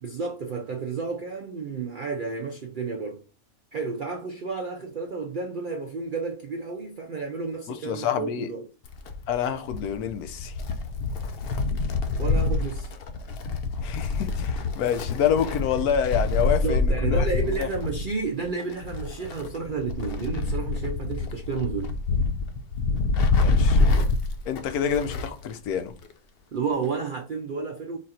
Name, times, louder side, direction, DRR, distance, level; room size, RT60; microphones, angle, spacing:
voice 1, 0.0-3.2 3.7-8.7 12.2-12.9 16.5-21.9 26.5-28.0, right 4 dB, 75° right, 0.4 m, -31 dB
voice 2, 7.7-8.5 9.3-10.5 13.8-17.3 17.6-17.7 23.4-23.8 24.5-25.9, left 8 dB, 80° left, 1.1 m, -27 dB
Wind, 8.9-25.5 25.8-25.9 26.8-26.9, left 3 dB, 65° left, 0.6 m, -26 dB
4.1 x 2.5 x 4.1 m
omnidirectional pair, 1.6 m